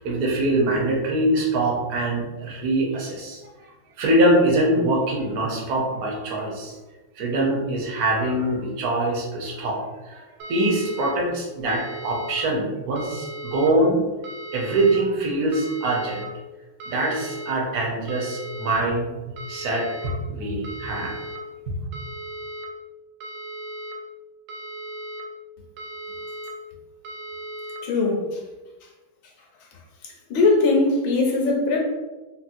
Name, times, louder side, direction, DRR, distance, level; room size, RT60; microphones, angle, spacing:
voice 1, 0.0-3.4 4.0-6.8 7.2-14.0 14.5-16.2 16.9-19.1 19.5-21.2 21.7-21.8, right 1 dB, 60° right, -2 dB, 1.0 m, -23 dB
sound 1, 10.4-11.1 11.7-12.4 13.0-13.7 14.2-15.0 15.5-16.2 16.8-17.5 18.1-18.8 19.4-20.1 20.6-21.4 21.9-22.7 23.2-23.9 24.5-25.2 25.8-26.5 27.0-27.8, right 1 dB, 90° right, 1.5 m, -36 dB
voice 2, 27.8-28.4 30.3-31.8, left 3 dB, 75° left, 0 dB, 1.3 m, -20 dB
4.1 x 2.0 x 2.5 m, 1.1 s
omnidirectional pair, 2.2 m